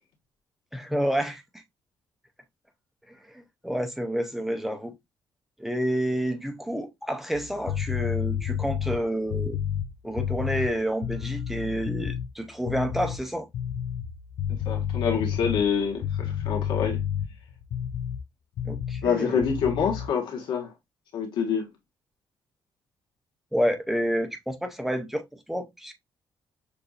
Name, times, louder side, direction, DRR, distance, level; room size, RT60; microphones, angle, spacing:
voice 1, 0.7-1.4 3.1-4.9 5.6-9.6 10.0-13.5 18.7-19.4 23.5-25.9, equal, 5° right, 0.7 m, -29 dB
sound 1, 7.3-12.3 12.6-13.2 13.5-18.2 18.6-19.1 19.4-20.1, left 9 dB, 65° left, 0.5 m, -30 dB
voice 2, 14.5-17.0 19.0-20.7 21.1-21.7, left 6 dB, 85° left, 1.6 m, -26 dB
6.7 x 2.6 x 2.5 m
cardioid pair, 120°, 8 cm